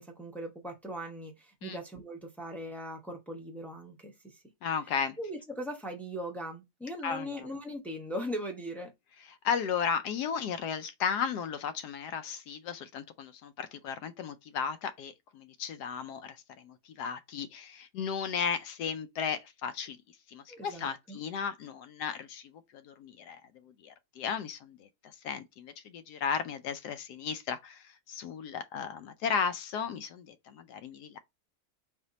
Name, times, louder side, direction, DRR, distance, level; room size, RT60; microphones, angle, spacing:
voice 1, 0.0-4.3 5.2-8.9 20.5-21.2, equal, ahead, 0.4 m, -39 dB
voice 2, 4.6-5.2 7.0-7.5 9.3-16.4 16.6-20.0 20.3-23.4 23.8-24.9 25.2-31.2, left 6 dB, 75° left, 1.1 m, -35 dB
4.2 x 2.6 x 3.9 m
omnidirectional pair, 1.8 m